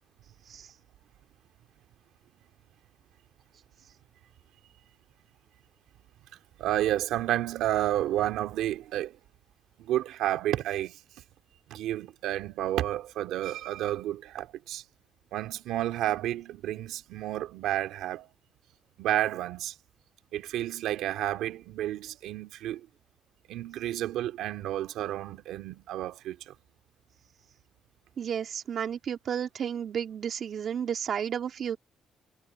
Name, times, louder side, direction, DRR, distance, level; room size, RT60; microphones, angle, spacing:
voice 1, 6.6-9.2 9.8-11.0 11.7-14.8 15.3-18.3 19.0-19.7 20.3-22.8 23.5-26.5, right 13 dB, 90° right, 2.4 m, -31 dB
voice 2, 28.2-31.8, right 8 dB, 60° right, 3.1 m, -32 dB
cardioid pair, 90°, 0 cm